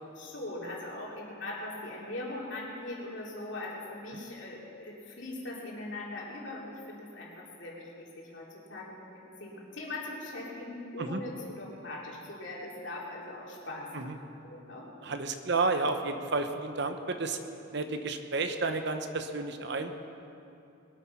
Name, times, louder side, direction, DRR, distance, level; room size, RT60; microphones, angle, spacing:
voice 1, 0.2-14.2 14.4-14.9, left 2 dB, 65° left, -3 dB, 3.1 m, -41 dB
voice 2, 15.0-17.4 17.7-19.9, right 3 dB, 60° right, 7 dB, 1.0 m, -31 dB
21.5 x 8.8 x 5.8 m, 2.8 s
head